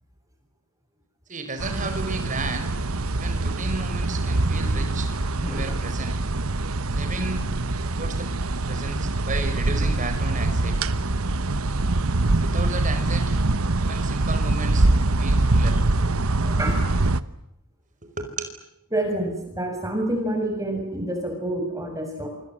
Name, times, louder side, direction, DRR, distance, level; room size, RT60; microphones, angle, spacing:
voice 1, 1.3-2.7 3.1-5.1 5.4-6.2 6.9-7.5 8.0-8.3 8.7-10.8 12.4-13.4 13.8-14.9 15.2-15.8 18.0-18.5, right 3 dB, 35° right, 7 dB, 5.1 m, -33 dB
sound 1, 1.6-17.2, right 2 dB, 75° right, 1.2 m, -24 dB
voice 2, 5.4-5.8 16.4-16.8 18.9-22.3, right 1 dB, 15° right, 3 dB, 7.1 m, -28 dB
27.5 x 27.0 x 7.8 m, 0.80 s
head